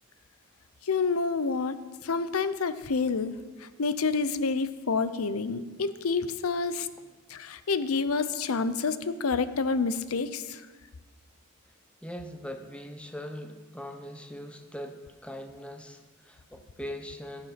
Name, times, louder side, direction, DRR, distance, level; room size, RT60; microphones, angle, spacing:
voice 1, 0.9-1.7 2.0-3.3 3.8-6.9 7.3-10.6, left 4 dB, 85° left, 13 dB, 0.6 m, -28 dB
voice 2, 12.0-17.5, equal, 5° left, 6 dB, 0.9 m, -41 dB
16.0 x 7.2 x 5.8 m, 1.3 s
head